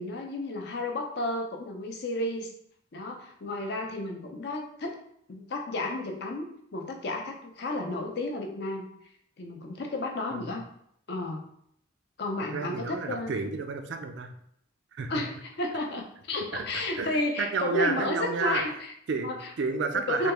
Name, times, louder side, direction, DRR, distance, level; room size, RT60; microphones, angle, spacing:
voice 1, 0.0-2.5 2.9-5.0 5.3-8.9 9.4-10.6 11.1-11.4 12.2-13.4 15.1-18.9 19.2-19.5 19.9-20.3, left 2 dB, 55° left, 3 dB, 0.5 m, -32 dB
voice 2, 12.5-14.3 14.9-15.2 16.5-16.7 17.0-18.7 19.1-20.3, right 4 dB, 60° right, 6 dB, 0.4 m, -31 dB
3.3 x 2.3 x 2.9 m, 0.71 s
head